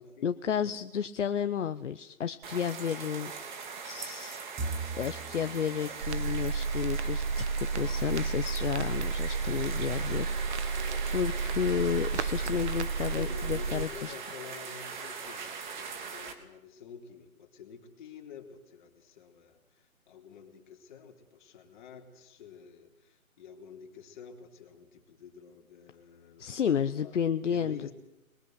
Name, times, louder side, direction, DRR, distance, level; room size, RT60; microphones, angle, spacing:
voice 1, 0.2-3.3 3.8-4.4 5.0-10.8 11.1-14.1 26.4-27.9, left 8 dB, 55° left, 10 dB, 1.1 m, -32 dB
sound 1, 2.4-16.3, right 5 dB, 35° right, 3.2 m, -41 dB
Bowed string instrument, 4.6-8.1, right 3 dB, 10° right, 1.5 m, -42 dB
Crackle, 6.0-13.9, right 4 dB, 50° right, 1.6 m, -32 dB
voice 2, 13.2-26.5 27.0-27.2 27.4-27.9, left 7 dB, 35° left, 2 dB, 3.8 m, -49 dB
28.0 x 22.5 x 8.0 m, 0.90 s
hypercardioid pair, 160°, 42 cm